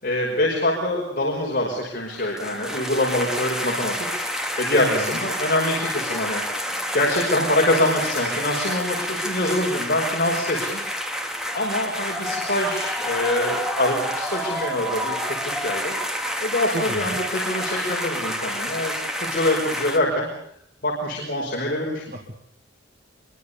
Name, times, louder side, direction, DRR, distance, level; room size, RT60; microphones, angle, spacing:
voice 1, 0.0-4.2 4.6-6.4 6.9-10.8 11.5-16.0 16.4-20.3 20.8-22.0, left 1 dB, 45° left, -2 dB, 5.4 m, -24 dB
sound 1, 2.1-20.0, equal, 5° right, 2.4 m, -29 dB
voice 2, 4.8-5.2 16.7-17.2 22.1-22.4, right 1 dB, 45° right, 3 dB, 2.2 m, -32 dB
24.0 x 23.5 x 7.0 m, 0.71 s
head